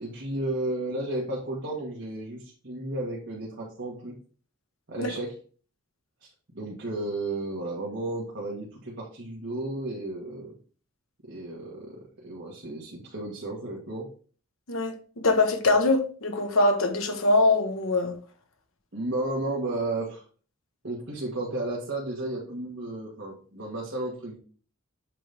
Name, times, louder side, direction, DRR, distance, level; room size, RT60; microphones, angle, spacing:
voice 1, 0.0-4.1 4.9-5.3 6.5-10.5 11.2-14.1 18.9-20.2 20.8-24.4, right 2 dB, 55° right, 1.5 m, -33 dB
voice 2, 14.7-18.2, left 2 dB, 75° left, 1.1 m, -23 dB
7.4 x 4.0 x 3.4 m
head